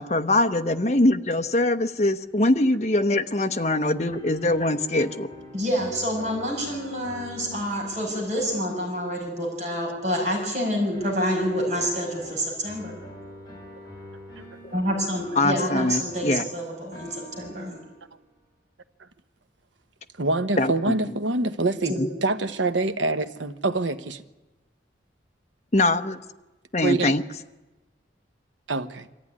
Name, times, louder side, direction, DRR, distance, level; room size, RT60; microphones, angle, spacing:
voice 1, 0.0-5.3 14.6-14.7 15.4-16.4 20.6-20.7 22.0-22.1 25.7-26.2 26.7-27.2, left 2 dB, 35° left, 1.0 m, -22 dB
sound 1, 4.1-9.9 10.9-18.3, equal, 20° left, 6.5 m, -45 dB
voice 2, 5.5-13.0 14.7-17.8 21.9-22.0, equal, 40° right, 5.9 m, -27 dB
voice 3, 20.2-24.2 26.8-27.2 28.7-29.1, right 2 dB, 85° right, 1.1 m, -26 dB
24.0 x 14.5 x 9.8 m
head